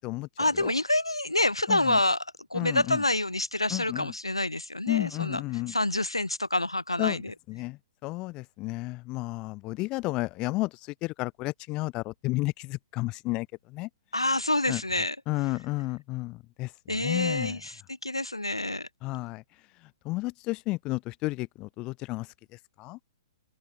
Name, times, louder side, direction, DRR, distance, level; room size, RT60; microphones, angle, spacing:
voice 1, 0.4-2.2 2.5-5.4 5.7-7.3 14.1-15.2 16.9-18.9, left 1 dB, 85° left, 4.5 m, -27 dB
voice 2, 1.7-2.0 2.5-3.0 3.7-4.1 4.9-5.7 7.0-7.2 7.5-13.9 14.7-14.8 15.3-17.6 19.0-19.4 20.0-22.3 22.8-23.0, left 21 dB, 30° left, 6.0 m, -32 dB
open air
figure-of-eight pair, 115°, 3 cm